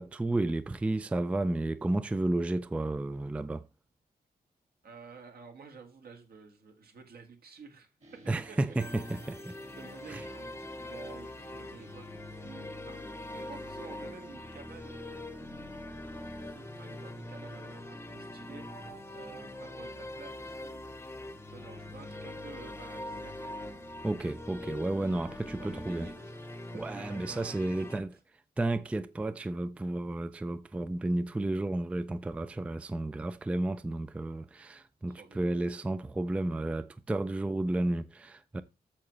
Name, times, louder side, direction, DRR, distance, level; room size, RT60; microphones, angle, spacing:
voice 1, 0.0-3.6 8.3-9.5 10.1-10.2 24.0-26.1 26.7-28.1 28.6-38.6, right 2 dB, 10° right, 0.3 m, -32 dB
voice 2, 4.8-7.9 8.5-8.7 9.7-13.0 13.3-15.7 16.4-20.8 21.5-23.7 25.5-26.4 26.7-28.2 35.1-35.5, right 4 dB, 75° right, 1.9 m, -51 dB
sound 1, 8.0-25.8, equal, 45° right, 2.0 m, -56 dB
sound 2, 8.8-28.0, left 1 dB, 15° left, 0.8 m, -43 dB
8.5 x 6.8 x 3.2 m
wide cardioid pair, 160°, 16 cm